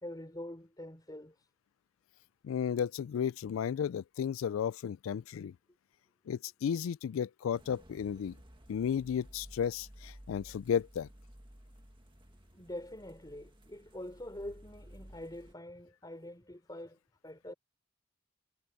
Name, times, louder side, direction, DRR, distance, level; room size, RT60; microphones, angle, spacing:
voice 1, 0.0-1.5 12.5-17.0 17.2-17.5, left 1 dB, 20° left, 4.0 m, -45 dB
voice 2, 2.4-5.5 6.3-8.4 8.7-11.1, left 8 dB, 85° left, 0.3 m, -33 dB
sound 1, 7.5-15.5, equal, 25° right, 1.8 m, -55 dB
head